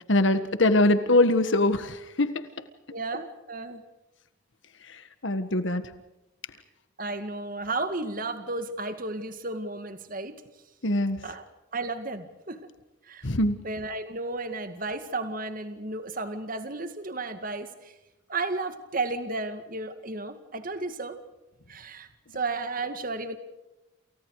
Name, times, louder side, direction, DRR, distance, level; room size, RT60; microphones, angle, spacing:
voice 1, 0.1-2.5 4.9-5.9 10.8-11.2 13.2-13.6, left 2 dB, 65° left, 11 dB, 1.6 m, -23 dB
voice 2, 2.9-3.8 7.0-10.4 11.2-11.4 11.7-12.6 13.1-13.3 13.6-17.9 18.3-21.2 21.7-22.1 22.3-23.4, right 3 dB, 40° right, 9 dB, 2.1 m, -33 dB
29.5 x 29.0 x 4.9 m, 0.97 s
head